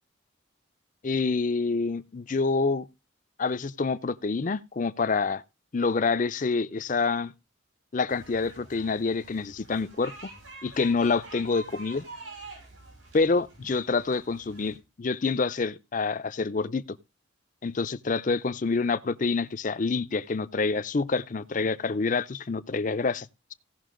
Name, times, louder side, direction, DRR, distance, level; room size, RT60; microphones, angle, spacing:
voice 1, 1.0-2.9 3.4-5.4 5.7-7.3 7.9-10.1 10.6-12.0 13.1-17.0 17.6-23.5, left 4 dB, 40° left, 0.5 m, -27 dB
sound 1, 8.1-14.8, right 2 dB, 85° right, 6.3 m, -47 dB
16.0 x 5.9 x 3.8 m
head